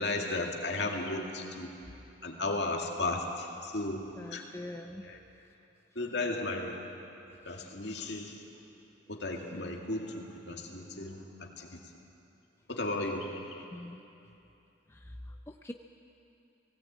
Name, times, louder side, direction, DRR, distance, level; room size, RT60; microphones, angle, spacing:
voice 1, 0.0-1.7 2.2-4.4 5.0-5.2 6.0-6.9 7.5-8.4 9.1-11.8 12.7-13.6, left 2 dB, 65° left, 1 dB, 2.1 m, -35 dB
voice 2, 4.2-5.0 13.7-14.0 14.9-15.7, left 1 dB, 15° left, 4 dB, 0.5 m, -44 dB
18.0 x 17.5 x 8.7 m, 2.8 s
head